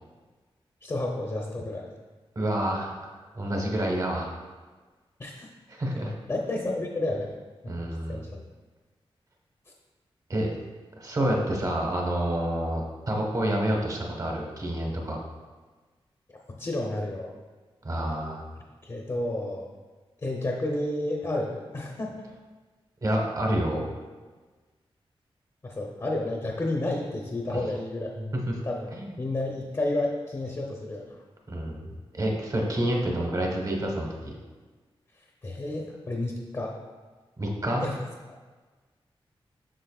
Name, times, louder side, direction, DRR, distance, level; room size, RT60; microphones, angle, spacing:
voice 1, 0.8-1.9 5.2-5.5 6.3-7.3 7.6-7.8 8.1-8.2 16.6-17.3 18.8-19.7 20.2-22.1 25.6-28.1 28.6-28.9 29.2-31.2 35.4-36.8 37.8-38.0, left 2 dB, 35° left, -1 dB, 0.8 m, -30 dB
voice 2, 2.3-2.9 3.3-4.3 5.7-6.1 7.7-8.3 10.3-10.5 11.0-15.2 17.8-18.4 23.0-23.9 28.2-28.5 28.9-29.1 31.5-34.4 37.4-37.8, right 1 dB, 35° right, 0 dB, 1.2 m, -28 dB
7.7 x 6.4 x 2.4 m, 1.3 s
wide cardioid pair, 110°, 10 cm